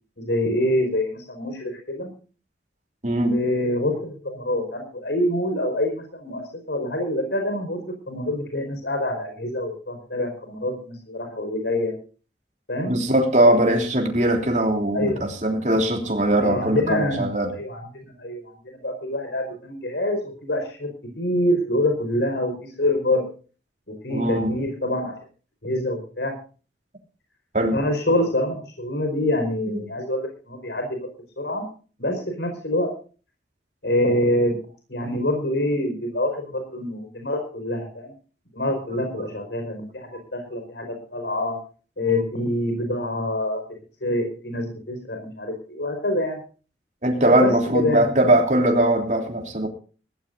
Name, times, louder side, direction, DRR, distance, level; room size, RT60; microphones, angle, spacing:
voice 1, 0.2-2.1 3.3-7.8 8.1-11.9 12.7-12.9 14.9-15.3 16.4-17.3 17.6-20.9 21.2-23.3 24.0-25.2 25.6-26.3 27.7-31.1 31.4-31.6 32.0-32.9 33.8-34.6 34.9-38.1 38.5-41.6 42.0-43.6 44.0-46.4 47.4-48.1, left 1 dB, 75° left, 4 dB, 5.0 m, -26 dB
voice 2, 3.0-3.4 12.9-17.5 24.1-24.5 27.5-27.8 47.0-49.7, right 1 dB, 40° right, 2 dB, 3.2 m, -20 dB
21.0 x 16.5 x 2.6 m, 0.37 s
head